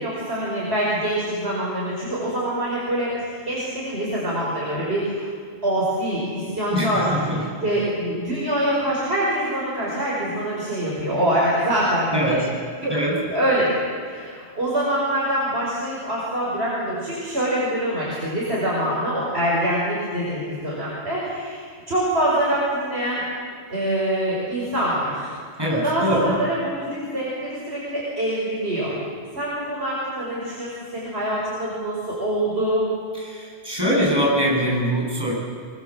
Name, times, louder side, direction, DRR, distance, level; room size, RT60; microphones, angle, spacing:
voice 1, 0.0-5.3 5.6-12.4 12.8-13.0 13.3-13.8 14.1-23.2 23.7-25.3 25.8-29.0 29.3-32.8, right 1 dB, 65° right, -6 dB, 5.6 m, -25 dB
voice 2, 6.7-7.4 12.1-12.4 12.9-13.1 25.6-26.3 33.2-35.3, equal, 20° right, -4 dB, 8.1 m, -22 dB
24.0 x 23.5 x 7.6 m, 2.1 s
omnidirectional pair, 1.1 m